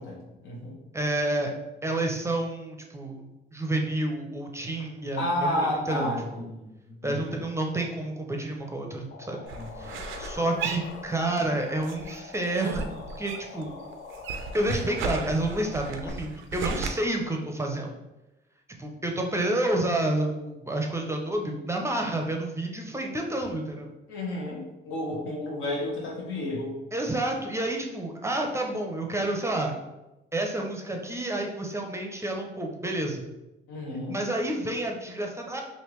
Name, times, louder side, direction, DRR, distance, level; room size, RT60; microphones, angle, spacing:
voice 1, 0.0-0.8 5.2-7.3 9.5-10.0 24.1-26.8 33.7-34.2, left 1 dB, 80° left, -2 dB, 1.1 m, -32 dB
voice 2, 0.9-1.5 1.8-6.2 7.0-9.4 9.8-13.7 14.5-17.9 18.8-23.9 26.9-29.7 30.3-33.3 34.1-35.6, right 1 dB, 15° right, 1 dB, 0.5 m, -29 dB
sound 1, 9.1-16.1, left 4 dB, 60° left, 0.6 m, -44 dB
sound 2, 9.5-11.5 11.8-13.7 13.9-16.9, right 5 dB, 85° right, 0.4 m, -35 dB
3.4 x 2.6 x 3.0 m, 0.99 s
cardioid pair, 90°, 20 cm